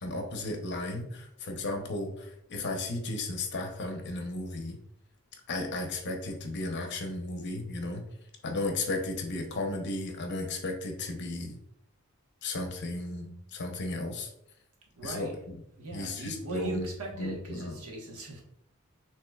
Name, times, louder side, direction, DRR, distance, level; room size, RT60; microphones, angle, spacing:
voice 1, 0.0-4.8 5.5-8.0 8.4-11.6 12.4-14.3 15.0-15.6 15.9-16.9 17.2-17.7, left 2 dB, 50° left, 4 dB, 0.8 m, -34 dB
voice 2, 14.9-15.4 15.8-18.4, right 2 dB, 90° right, -1 dB, 1.2 m, -40 dB
6.3 x 3.0 x 2.3 m, 0.78 s
head